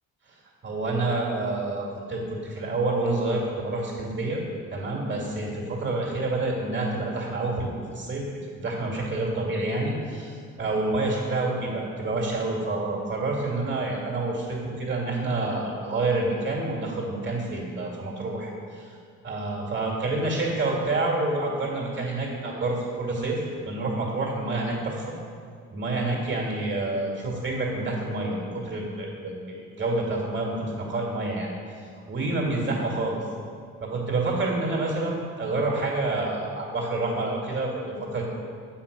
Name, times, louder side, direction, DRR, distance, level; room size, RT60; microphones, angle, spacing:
voice 1, 0.6-4.4 4.7-8.2 8.5-19.0 19.2-23.4 23.7-25.0 25.7-31.5 32.1-33.2 33.8-38.2, right 2 dB, 40° right, -2 dB, 2.2 m, -28 dB
7.8 x 5.8 x 5.2 m, 2.2 s
cardioid pair, 90°, 30 cm